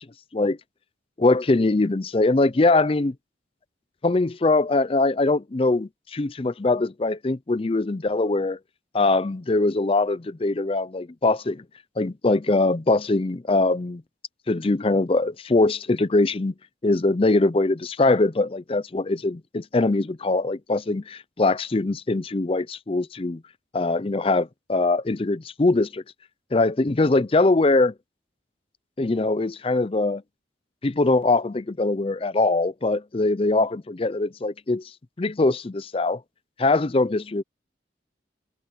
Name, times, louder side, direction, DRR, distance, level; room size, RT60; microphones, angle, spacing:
voice 1, 1.2-3.1 4.0-8.6 8.9-11.6 12.0-14.0 14.5-16.5 16.8-23.4 23.7-26.0 26.5-27.9 29.0-30.2 30.8-34.8 35.2-36.2 36.6-37.4, left 2 dB, 30° left, 0.5 m, -22 dB
head